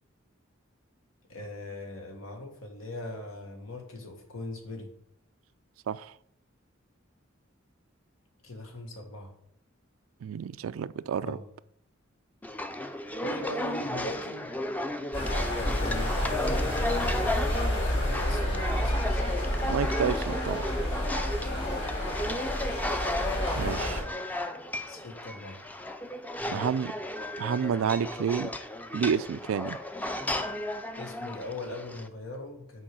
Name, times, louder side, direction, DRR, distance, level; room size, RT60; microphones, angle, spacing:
voice 1, 1.3-4.9 8.4-9.3 11.2-11.5 13.2-14.5 15.6-17.4 17.9-19.3 21.4-21.7 23.5-24.1 24.8-25.6 26.4-26.7 31.0-32.8, left 2 dB, 90° left, 3 dB, 1.7 m, -40 dB
voice 2, 10.2-11.4 19.7-20.7 23.6-24.0 26.5-26.9 27.4-28.5 28.9-29.8, right 7 dB, 85° right, 17 dB, 0.3 m, -29 dB
sound 1, 12.4-32.1, left 1 dB, 10° left, 0.4 m, -34 dB
sound 2, 15.1-24.0, left 1 dB, 65° left, 3.2 m, -30 dB
6.5 x 4.7 x 6.1 m, 0.69 s
head